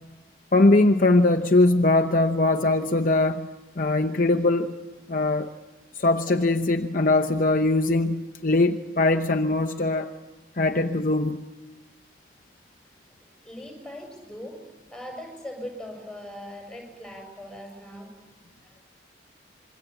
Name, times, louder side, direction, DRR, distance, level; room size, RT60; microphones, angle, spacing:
voice 1, 0.5-3.5 3.8-4.7 5.1-5.5 5.9-10.1 10.6-11.4, left 2 dB, 45° left, 5 dB, 0.8 m, -21 dB
voice 2, 13.4-14.6 14.9-18.1 18.6-18.8, left 1 dB, 5° left, 2 dB, 6.8 m, -40 dB
26.5 x 23.0 x 8.1 m, 1.2 s
head